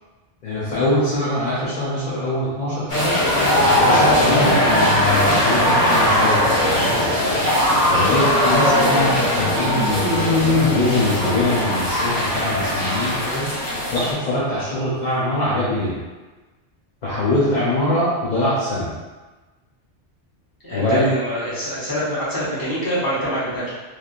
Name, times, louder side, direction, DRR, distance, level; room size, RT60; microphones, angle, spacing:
voice 1, 0.4-3.2 3.7-7.1 7.9-13.5 13.9-15.9 17.0-18.9 20.7-21.1, left 1 dB, 45° left, -9 dB, 0.7 m, -23 dB
sound 1, 2.9-14.1, left 1 dB, 75° left, 1.5 m, -19 dB
voice 2, 20.6-23.7, equal, 20° left, -10 dB, 1.0 m, -25 dB
3.3 x 2.6 x 2.4 m, 1.2 s
omnidirectional pair, 1.2 m